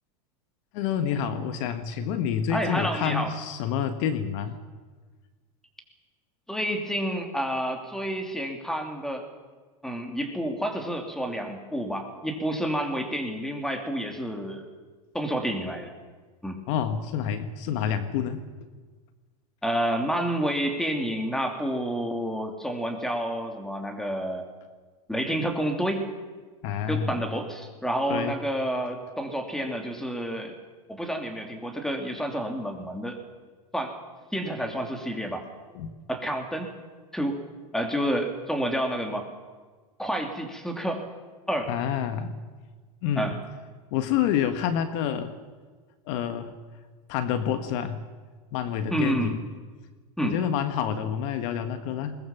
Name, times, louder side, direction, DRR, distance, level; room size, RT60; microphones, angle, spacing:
voice 1, 0.7-4.6 16.7-18.4 26.6-27.1 28.1-28.4 35.7-35.9 41.7-42.4 43.0-43.3 43.9-45.3 46.1-46.5 47.1-48.0 48.5-49.4 50.2-52.2, left 8 dB, 55° left, 10 dB, 1.7 m, -28 dB
voice 2, 2.5-3.3 6.5-9.3 9.8-14.7 15.1-15.9 16.4-16.6 19.6-24.6 25.1-26.1 26.9-30.5 30.9-33.2 33.7-34.0 34.3-35.4 36.1-36.7 37.1-37.4 37.7-39.3 40.0-41.0 41.5-41.7 43.2-43.4 48.9-49.3 50.2-50.4, equal, ahead, 4 dB, 3.1 m, -29 dB
21.5 x 20.5 x 7.4 m, 1.4 s
supercardioid pair, 125°, 19 cm